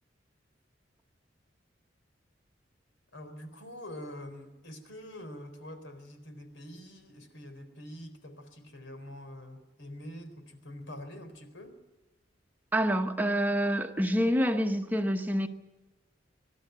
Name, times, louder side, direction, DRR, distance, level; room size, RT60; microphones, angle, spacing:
voice 1, 3.1-11.8, left 1 dB, 85° left, 4.0 m, -45 dB
voice 2, 12.7-15.5, equal, 10° right, 0.9 m, -27 dB
24.5 x 12.5 x 9.3 m
head